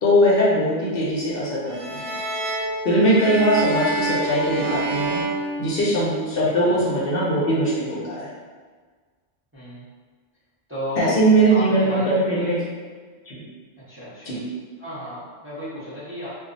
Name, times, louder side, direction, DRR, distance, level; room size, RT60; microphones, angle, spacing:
voice 1, 0.0-2.1 2.8-5.2 5.6-8.3 11.0-12.6 13.3-13.4 14.3-14.4, right 1 dB, 60° left, -6 dB, 0.8 m, -20 dB
sound 1, 1.7-6.3, right 2 dB, 90° right, 0.9 m, -27 dB
voice 2, 6.3-6.8 9.5-9.8 10.7-12.6 13.9-14.4 14.8-16.3, left 1 dB, 15° right, -11 dB, 0.6 m, -34 dB
2.3 x 2.0 x 3.8 m, 1.5 s
omnidirectional pair, 1.2 m